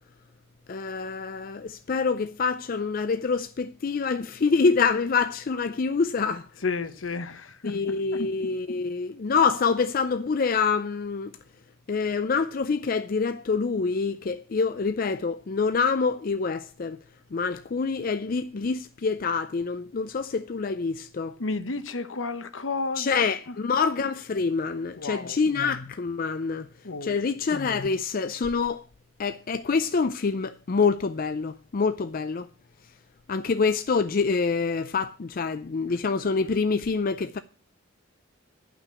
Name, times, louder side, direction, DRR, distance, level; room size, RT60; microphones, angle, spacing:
voice 1, 0.7-6.5 7.6-11.3 11.9-17.0 17.3-21.4 23.0-26.7 27.0-28.8 29.2-32.5 33.3-37.4, left 5 dB, 45° left, 0.4 m, -26 dB
voice 2, 6.6-8.3 21.4-23.1 23.5-23.6 25.0-25.4 26.8-27.4, left 3 dB, 75° left, 1.0 m, -32 dB
11.0 x 6.0 x 8.2 m
head